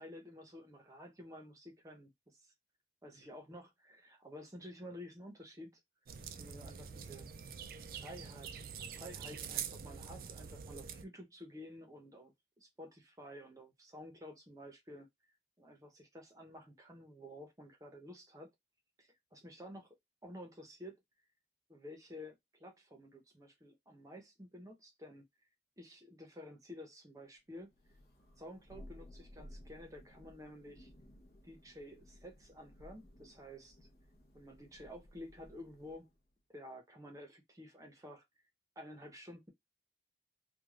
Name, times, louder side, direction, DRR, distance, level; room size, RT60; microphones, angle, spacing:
voice 1, 0.0-2.5 3.0-5.8 6.4-7.3 7.8-8.5 8.8-15.1 15.6-18.5 19.0-19.9 20.2-21.0 21.7-25.3 25.8-27.7 28.4-30.9 31.4-33.8 34.3-36.1 36.5-38.2 38.8-39.5, left 1 dB, 20° right, 0.7 m, -52 dB
sound 1, 6.1-11.0, right 7 dB, 55° right, 0.4 m, -45 dB
Thunder, 27.7-36.1, left 1 dB, 60° left, 0.8 m, -57 dB
3.2 x 2.3 x 2.3 m
head